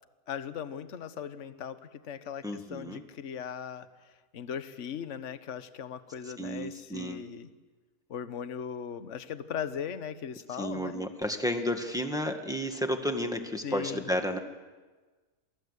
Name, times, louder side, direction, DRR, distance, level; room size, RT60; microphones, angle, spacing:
voice 1, 0.3-3.9 4.3-7.5 8.1-11.0 13.6-14.1, left 8 dB, 50° left, 11 dB, 1.4 m, -38 dB
voice 2, 2.4-3.0 6.4-7.3 10.6-14.4, equal, ahead, 3 dB, 1.8 m, -32 dB
28.0 x 20.0 x 8.3 m, 1.3 s
omnidirectional pair, 1.7 m